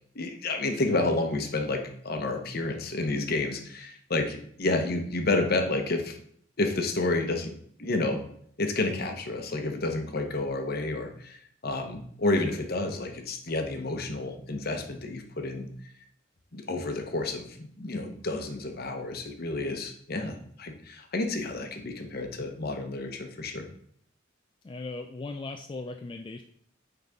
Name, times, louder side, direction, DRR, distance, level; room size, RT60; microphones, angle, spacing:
voice 1, 0.1-6.2 6.6-7.5 7.8-8.2 8.6-11.4 11.6-15.7 16.5-23.7, left 2 dB, 55° left, 5 dB, 0.9 m, -30 dB
voice 2, 24.6-26.4, left 3 dB, 25° left, 4 dB, 0.3 m, -38 dB
9.2 x 4.0 x 3.6 m, 0.64 s
head